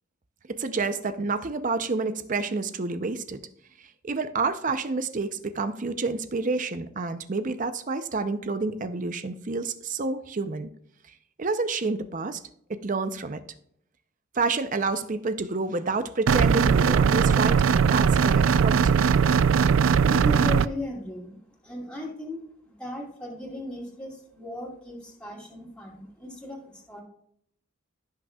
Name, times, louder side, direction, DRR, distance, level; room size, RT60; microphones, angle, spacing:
voice 1, 0.5-3.4 4.0-10.7 11.4-12.4 12.7-13.4 14.4-19.0, right 3 dB, 40° right, 10 dB, 0.6 m, -29 dB
sound 1, 16.3-20.7, right 6 dB, 85° right, 0.4 m, -20 dB
voice 2, 20.0-27.0, equal, 5° left, -4 dB, 2.4 m, -37 dB
16.0 x 6.2 x 2.3 m, 0.70 s
head